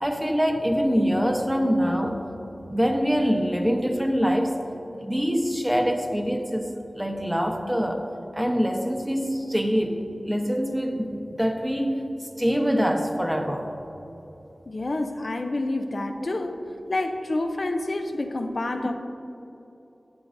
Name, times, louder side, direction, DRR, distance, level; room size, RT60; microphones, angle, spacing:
voice 1, 0.0-2.2 2.7-4.6 5.0-6.7 7.0-8.0 8.3-13.7 16.1-16.3, equal, 10° right, 3 dB, 0.9 m, -24 dB
voice 2, 14.7-16.6 16.9-18.9, left 2 dB, 65° left, 5 dB, 0.4 m, -28 dB
11.5 x 7.7 x 2.6 m, 3.0 s
wide cardioid pair, 45°, 0 cm